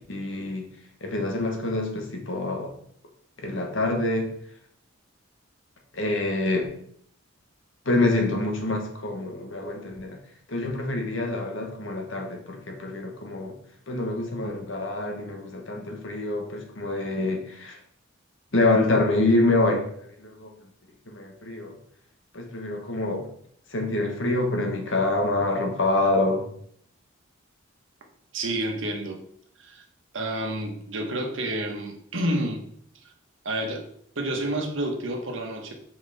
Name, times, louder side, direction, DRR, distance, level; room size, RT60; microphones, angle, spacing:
voice 1, 0.1-0.7 1.0-2.7 3.4-4.3 5.9-6.7 7.8-10.2 10.5-13.6 13.9-17.8 18.5-19.9 20.2-20.5 21.1-21.7 22.3-23.3 23.7-26.5, left 2 dB, 65° left, 2 dB, 1.3 m, -26 dB
voice 2, 28.3-29.2 29.6-29.8 30.1-32.6 33.4-33.8 34.1-35.7, right 1 dB, 65° right, 2 dB, 1.2 m, -29 dB
5.4 x 5.1 x 4.1 m, 0.65 s
head